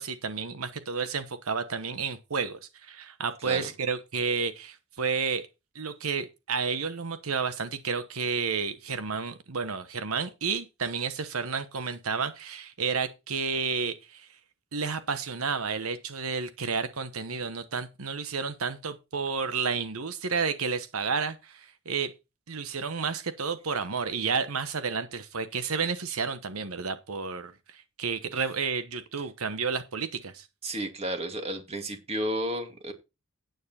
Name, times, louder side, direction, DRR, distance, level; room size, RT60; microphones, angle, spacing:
voice 1, 0.0-5.5 5.7-14.3 14.7-22.1 22.5-30.5, right 5 dB, 85° right, 1.1 m, -31 dB
voice 2, 30.6-32.9, right 1 dB, 30° right, 2.3 m, -32 dB
9.5 x 9.0 x 4.3 m
head